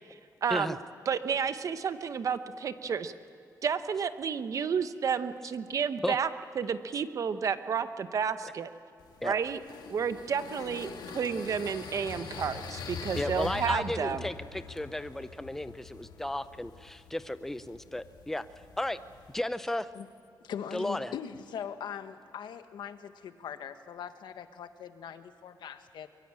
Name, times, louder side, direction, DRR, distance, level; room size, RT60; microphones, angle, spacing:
voice 1, 0.4-0.8 1.1-3.1 3.6-6.3 6.6-8.7 9.2-9.6 9.9-14.3, right 6 dB, 45° right, 11 dB, 0.9 m, -31 dB
sound 1, 9.0-19.4, left 6 dB, 70° left, 2.2 m, -44 dB
voice 2, 13.1-18.4 18.8-19.0 19.3-19.9 20.7-21.1, left 1 dB, 5° left, 13 dB, 0.5 m, -34 dB
voice 3, 20.4-26.1, left 8 dB, 90° left, 9 dB, 1.3 m, -41 dB
23.0 x 22.5 x 8.8 m, 2.5 s
wide cardioid pair, 175°, 8 cm